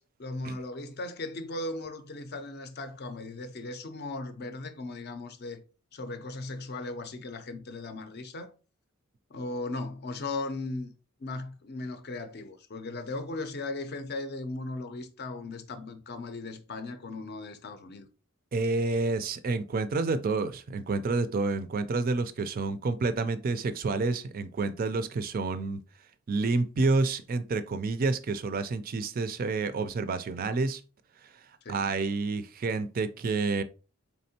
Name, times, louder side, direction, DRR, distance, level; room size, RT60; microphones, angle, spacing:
voice 1, 0.0-5.6 5.9-8.5 9.3-10.9 11.2-18.1 31.6-31.9, left 2 dB, 50° left, 0.5 m, -37 dB
voice 2, 18.5-25.8 26.3-30.8 31.2-31.3 31.7-33.6, right 3 dB, 40° right, 0.4 m, -29 dB
4.2 x 3.5 x 2.7 m
head